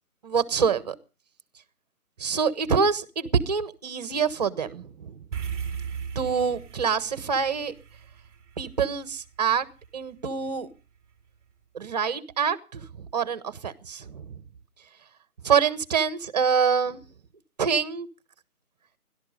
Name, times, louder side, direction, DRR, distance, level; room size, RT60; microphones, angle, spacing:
voice 1, 0.2-0.9 2.2-5.1 6.1-7.7 8.6-9.6 9.9-10.7 11.7-14.3 15.4-17.0 17.6-18.1, right 6 dB, 25° right, 1.4 m, -26 dB
sound 1, 5.3-9.8, right 7 dB, 5° right, 1.8 m, -37 dB
18.0 x 12.5 x 5.4 m
hypercardioid pair, 165°, 45 cm